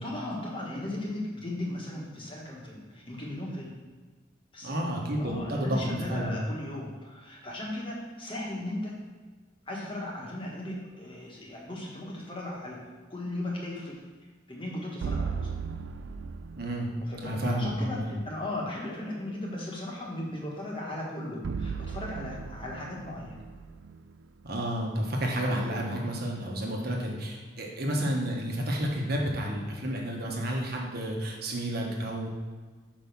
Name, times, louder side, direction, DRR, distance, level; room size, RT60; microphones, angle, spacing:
voice 1, 0.0-3.7 4.5-4.9 5.2-8.9 9.7-12.8 13.1-14.0 14.5-15.5 17.1-23.3, left 1 dB, 25° left, -3 dB, 1.4 m, -37 dB
voice 2, 4.6-6.4 16.6-16.9 17.2-18.2 24.4-32.3, equal, 55° right, -1 dB, 1.3 m, -31 dB
sound 1, 15.0-17.2 21.4-24.7, right 5 dB, 70° right, 0.4 m, -36 dB
5.4 x 5.2 x 6.0 m, 1.4 s
head